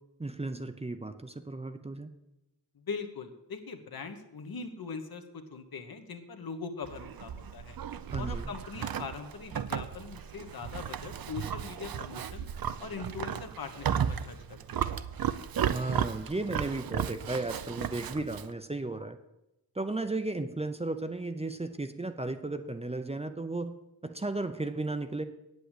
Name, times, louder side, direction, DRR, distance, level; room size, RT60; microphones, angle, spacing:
voice 1, 0.2-2.1 8.1-8.5 15.7-19.2 19.7-25.2, right 2 dB, 15° right, 8 dB, 0.6 m, -35 dB
voice 2, 2.8-7.8 8.2-12.5 12.8-14.9, left 5 dB, 70° left, 5 dB, 1.3 m, -41 dB
Livestock farm animals working animals, 6.8-18.5, right 9 dB, 70° right, 0.6 m, -35 dB
9.0 x 8.1 x 8.2 m, 0.93 s
wide cardioid pair, 130°, 37 cm